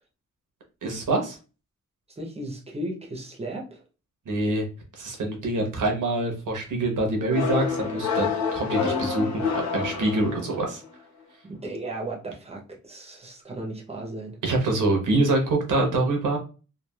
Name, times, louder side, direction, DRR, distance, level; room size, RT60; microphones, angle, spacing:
voice 1, 0.8-1.4 4.3-4.7 5.0-10.8 14.4-16.4, right 2 dB, 85° right, 0.9 m, -25 dB
voice 2, 2.2-3.8 11.4-14.4, right 1 dB, 20° right, 0.6 m, -35 dB
sound 1, 7.3-10.8, left 5 dB, 65° left, 0.8 m, -28 dB
3.1 x 2.4 x 2.2 m
wide cardioid pair, 155°, 30 cm